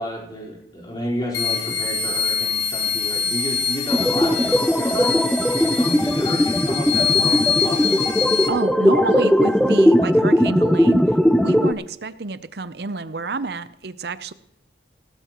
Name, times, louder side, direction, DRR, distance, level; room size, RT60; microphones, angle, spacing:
voice 1, 0.0-5.3 5.5-8.0, equal, 25° left, -2 dB, 4.2 m, -31 dB
sound 1, 1.3-8.5, left 6 dB, 70° left, 1.6 m, -24 dB
sound 2, 3.9-11.7, equal, 5° left, 0.5 m, -18 dB
voice 2, 8.5-14.3, right 3 dB, 60° right, 14 dB, 0.7 m, -28 dB
17.5 x 15.0 x 3.0 m, 0.81 s
head